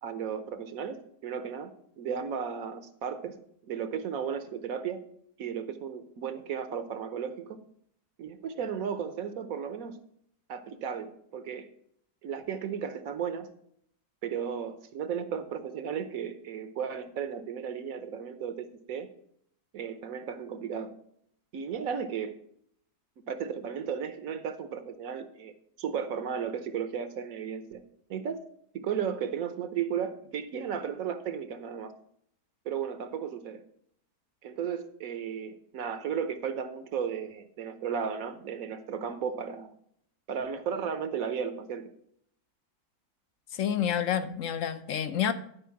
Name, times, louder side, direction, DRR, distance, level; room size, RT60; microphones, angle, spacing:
voice 1, 0.0-3.4 3.6-5.0 5.4-7.6 8.2-10.0 10.5-11.7 12.2-13.5 14.2-19.1 19.7-21.0 21.5-22.4 23.3-25.5 25.8-27.8 28.1-28.4 28.7-31.9 32.6-33.6 34.4-39.7 40.3-41.9, right 7 dB, 65° right, 1.2 m, -34 dB
voice 2, 43.6-45.3, left 9 dB, 60° left, 1.0 m, -28 dB
11.0 x 5.1 x 5.8 m
omnidirectional pair, 1.7 m